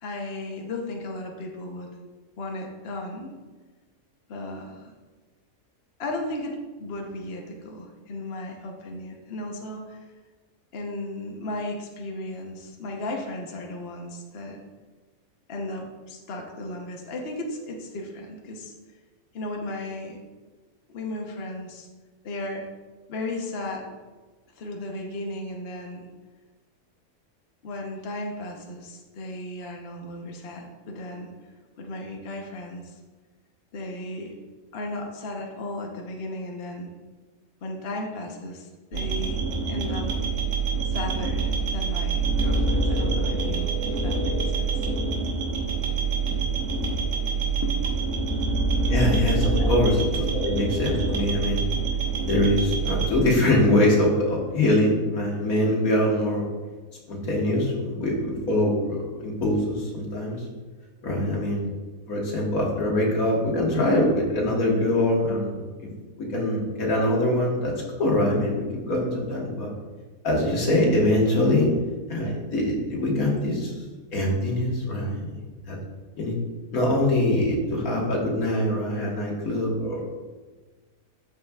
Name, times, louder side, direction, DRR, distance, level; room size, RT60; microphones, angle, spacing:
voice 1, 0.0-1.9 2.4-3.3 4.3-4.9 6.0-10.0 10.7-14.6 15.5-18.7 19.3-20.2 20.9-21.9 22.2-22.7 23.1-23.9 24.5-26.1 27.6-33.0 33.7-34.3 34.7-36.9 37.6-39.4 39.7-40.1 40.8-44.9 47.6-47.7 49.5-49.7, left 1 dB, 50° left, 1 dB, 1.0 m, -35 dB
sound 1, 38.9-53.1, right 3 dB, 60° right, 1.5 m, -25 dB
voice 2, 48.9-51.6 52.2-56.5 57.1-60.4 61.0-61.7 62.1-65.9 66.2-67.7 68.0-69.7 70.2-71.7 72.1-73.7 74.1-75.4 75.7-75.8 76.2-76.4 76.7-80.0, left 1 dB, 85° left, -2 dB, 1.9 m, -23 dB
12.5 x 4.9 x 2.3 m, 1.3 s
omnidirectional pair, 1.5 m